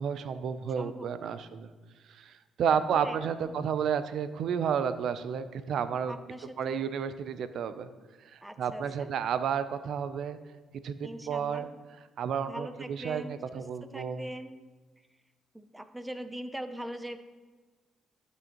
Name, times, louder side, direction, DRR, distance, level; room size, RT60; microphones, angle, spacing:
voice 1, 0.0-1.7 2.1-6.1 6.6-7.9 8.2-10.4 10.8-11.7 12.2-14.2, right 7 dB, 70° right, 12 dB, 0.5 m, -31 dB
voice 2, 0.8-1.5 2.7-3.2 3.4-3.5 6.1-6.9 8.4-9.1 11.0-11.7 12.5-14.6 15.5-17.2, right 1 dB, 10° right, 10 dB, 0.5 m, -42 dB
12.0 x 6.3 x 2.9 m, 1.4 s
cardioid pair, 90°, 0 cm